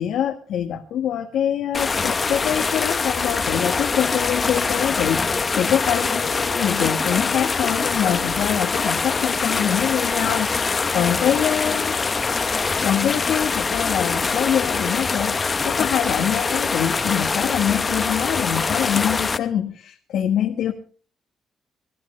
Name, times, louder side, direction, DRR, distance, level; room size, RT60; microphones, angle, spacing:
voice 1, 0.0-12.0 12.8-20.7, left 9 dB, 80° left, 2 dB, 1.5 m, -24 dB
sound 1, 1.7-19.4, left 4 dB, 35° left, 0.9 m, -23 dB
25.5 x 12.0 x 3.3 m, 0.41 s
cardioid pair, 90°, 0 cm